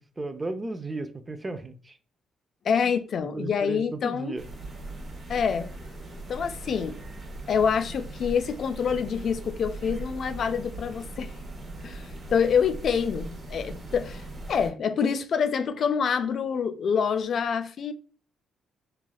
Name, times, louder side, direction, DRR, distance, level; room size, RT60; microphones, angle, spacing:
voice 1, 0.2-2.0 2.8-2.9 3.3-4.5, right 2 dB, 25° right, 0.4 m, -34 dB
voice 2, 2.6-4.4 5.3-5.7 6.3-7.0 7.5-11.3 11.8-17.9, left 6 dB, 55° left, 0.3 m, -26 dB
sound 1, 4.4-14.7, right 2 dB, 45° right, 0.8 m, -39 dB
3.3 x 2.3 x 2.2 m
cardioid pair, 90°, 0 cm